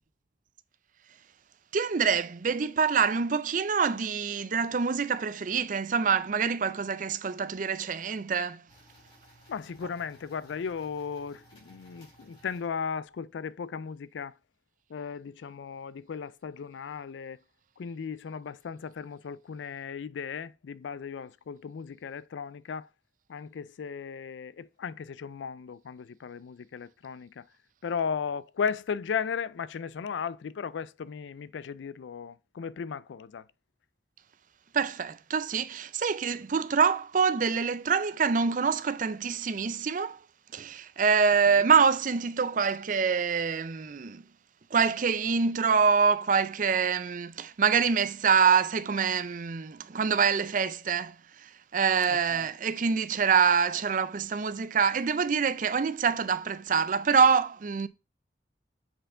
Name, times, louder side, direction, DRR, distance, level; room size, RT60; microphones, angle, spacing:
voice 1, 1.7-8.6 34.7-40.2 40.5-44.2 44.7-51.2 51.4-57.9, right 6 dB, 45° right, 0.5 m, -25 dB
sound 1, 8.7-13.1, equal, 30° left, 4.0 m, -58 dB
voice 2, 9.5-14.4 14.9-17.4 17.8-22.9 23.3-27.4 27.8-33.5 41.5-41.7 52.1-52.5, left 6 dB, 85° left, 0.4 m, -36 dB
7.7 x 4.4 x 3.8 m
head